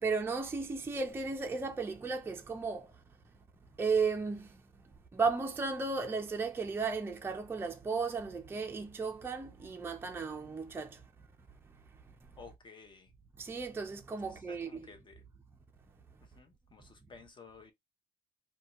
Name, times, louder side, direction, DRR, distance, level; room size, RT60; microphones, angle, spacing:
voice 1, 0.0-2.9 3.8-4.6 5.1-11.0 13.4-14.9, right 4 dB, 15° right, 0.5 m, -34 dB
voice 2, 12.4-13.1 14.2-15.3 16.2-17.7, left 5 dB, 30° left, 0.7 m, -54 dB
2.7 x 2.3 x 3.0 m
cardioid pair, 110°, 17 cm